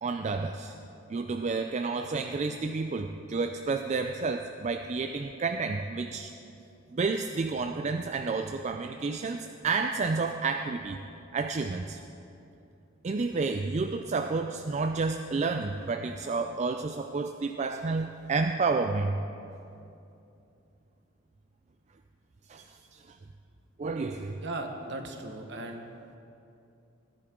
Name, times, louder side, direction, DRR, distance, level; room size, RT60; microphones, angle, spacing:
voice 1, 0.0-0.7 1.1-6.3 6.9-11.0 11.3-12.0 13.0-19.2 22.5-23.0 23.8-24.4, right 4 dB, 35° right, 6 dB, 0.4 m, -30 dB
voice 2, 24.4-25.8, right 2 dB, 60° right, 4 dB, 1.2 m, -37 dB
17.0 x 10.5 x 3.7 m, 2.7 s
head